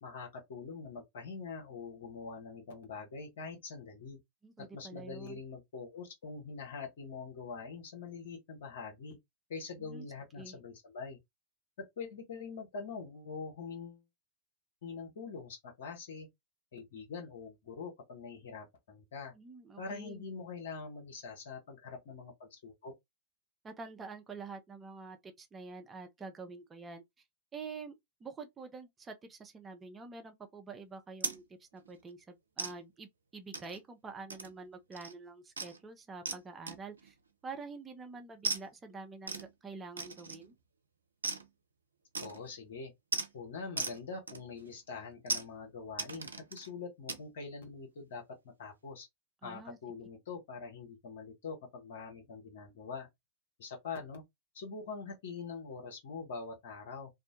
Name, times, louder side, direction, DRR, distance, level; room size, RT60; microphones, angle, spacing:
voice 1, 0.0-4.2 4.6-9.2 9.5-11.2 12.0-14.1 14.8-16.3 16.7-19.3 19.8-22.9 42.2-42.9 43.3-49.1 49.4-53.1 53.6-54.2 54.5-57.1, left 5 dB, 60° left, 1.0 m, -44 dB
voice 2, 4.4-5.4 9.8-10.1 10.4-10.6 19.3-20.3 23.6-27.0 27.5-27.9 28.2-37.2 37.4-40.5 49.4-49.8, right 4 dB, 20° right, 0.5 m, -47 dB
sound 1, 31.2-31.4 31.8-32.0 32.6-32.7 33.5-33.8 34.3-34.6 34.9-35.1 35.6-35.8 36.3-36.4 36.7-37.1 38.4-38.6 39.3-39.5 40.0-40.5 41.2-41.5 42.1-42.5 43.1-43.3 43.8-44.0 44.3-44.7 45.3-45.5 46.0-46.7 47.1-47.2, right 4 dB, 75° right, 0.4 m, -37 dB
2.6 x 2.1 x 2.6 m
figure-of-eight pair, 90°, 0 cm